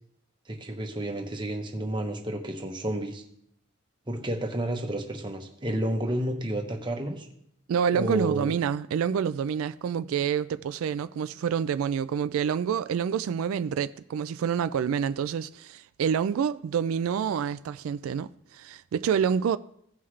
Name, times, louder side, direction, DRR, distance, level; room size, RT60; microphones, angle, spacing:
voice 1, 0.5-3.2 4.1-7.3 7.9-8.6, right 1 dB, 20° right, 1.0 m, -31 dB
voice 2, 7.7-19.6, right 7 dB, 85° right, 0.3 m, -27 dB
16.5 x 5.6 x 3.2 m
head